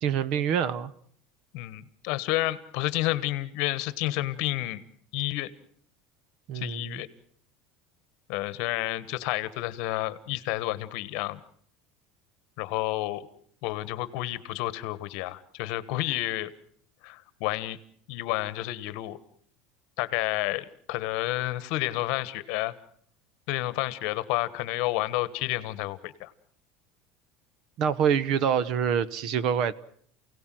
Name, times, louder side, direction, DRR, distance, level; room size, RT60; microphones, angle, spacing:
voice 1, 0.0-0.9 6.5-7.0 27.8-29.7, right 8 dB, 45° right, 18 dB, 1.0 m, -26 dB
voice 2, 1.5-4.8 5.1-5.5 6.5-7.1 8.3-11.4 12.6-13.3 13.6-16.5 17.0-17.8 18.1-19.2 20.0-22.7 23.5-26.3, left 17 dB, 60° left, 15 dB, 1.3 m, -30 dB
28.5 x 17.0 x 7.7 m, 0.62 s
cardioid pair, 165°, 0 cm